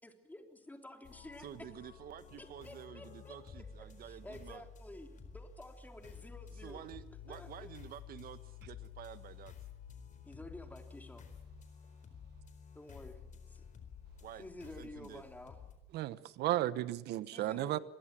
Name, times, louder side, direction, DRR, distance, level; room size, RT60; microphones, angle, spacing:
voice 1, 0.0-1.7 2.4-6.9 7.3-7.7 10.2-11.3 12.7-13.6 14.4-15.6 17.3-17.8, left 1 dB, 10° left, 5 dB, 3.4 m, -51 dB
sound 1, 1.0-15.8, left 6 dB, 45° left, 4.3 m, -52 dB
voice 2, 1.4-4.6 6.6-9.5 14.2-14.4 14.8-15.2, right 10 dB, 60° right, 13 dB, 1.5 m, -50 dB
voice 3, 15.9-17.8, right 14 dB, 80° right, 16 dB, 1.1 m, -34 dB
26.0 x 21.5 x 7.6 m, 0.95 s
cardioid pair, 110°, 17 cm